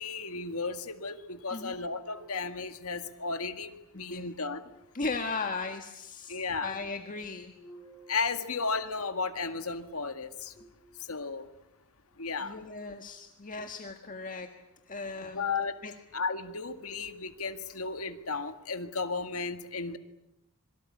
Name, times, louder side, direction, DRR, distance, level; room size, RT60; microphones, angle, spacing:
voice 1, 0.0-4.6 6.3-6.7 8.1-10.5 11.1-11.5 12.2-12.6 15.3-15.7 16.1-20.0, left 4 dB, 70° left, 8 dB, 1.9 m, -34 dB
sound 1, 1.5-3.8 4.5-5.5 7.5-9.6 10.5-11.4 12.0-12.1 13.5-13.6, right 1 dB, 5° right, 7.6 m, -56 dB
voice 2, 3.9-4.3 4.9-7.5 12.4-14.5 14.9-15.5 15.8-15.9, left 3 dB, 35° left, 5 dB, 1.7 m, -37 dB
26.0 x 23.0 x 8.6 m, 0.88 s
head